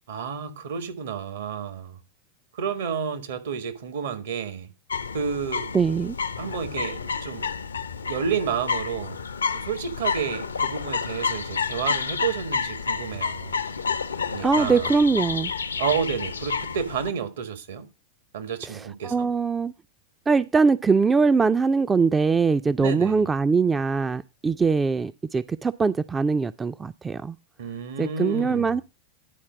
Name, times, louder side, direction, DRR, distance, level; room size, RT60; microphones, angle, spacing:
voice 1, 0.1-2.0 2.6-4.7 5.1-5.7 6.4-7.5 8.1-9.2 9.5-13.6 14.3-14.9 15.8-17.9 18.3-19.3 22.8-23.3 27.6-28.8, right 7 dB, 70° right, 1.5 m, -30 dB
sound 1, 4.9-17.1, left 5 dB, 85° left, 0.6 m, -30 dB
voice 2, 5.7-6.2 14.4-15.5 18.7-19.7 20.3-27.4 28.0-28.8, right 4 dB, 15° right, 0.4 m, -22 dB
10.0 x 4.4 x 5.9 m
hypercardioid pair, 95°, 0 cm